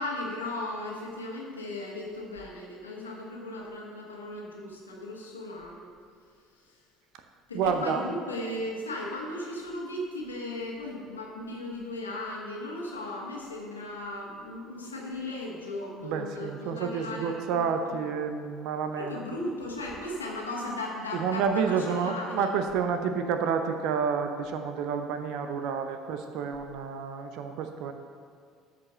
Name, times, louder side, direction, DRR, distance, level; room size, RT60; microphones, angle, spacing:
voice 1, 0.0-5.9 6.6-6.8 7.5-18.0 19.0-22.5, left 1 dB, 85° left, -3 dB, 1.8 m, -36 dB
voice 2, 7.5-8.0 16.0-19.1 21.1-27.9, right 6 dB, 60° right, 7 dB, 0.7 m, -29 dB
13.0 x 5.1 x 6.6 m, 2.1 s
figure-of-eight pair, 60°, 0 cm